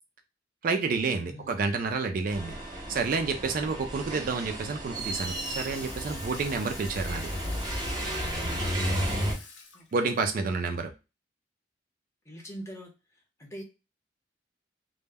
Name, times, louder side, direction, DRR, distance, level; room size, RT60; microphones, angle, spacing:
voice 1, 0.6-2.6 2.9-7.3 9.9-10.9, right 4 dB, 50° right, 6 dB, 0.3 m, -29 dB
voice 2, 1.2-1.6 9.7-10.3 12.2-13.6, equal, 15° left, 0 dB, 0.7 m, -44 dB
sound 1, 2.3-9.3, equal, 25° right, 0.7 m, -33 dB
Water tap faucet / Sink (filling or washing), 4.9-10.2, left 4 dB, 80° left, 0.6 m, -47 dB
2.1 x 2.1 x 3.3 m, 0.27 s
head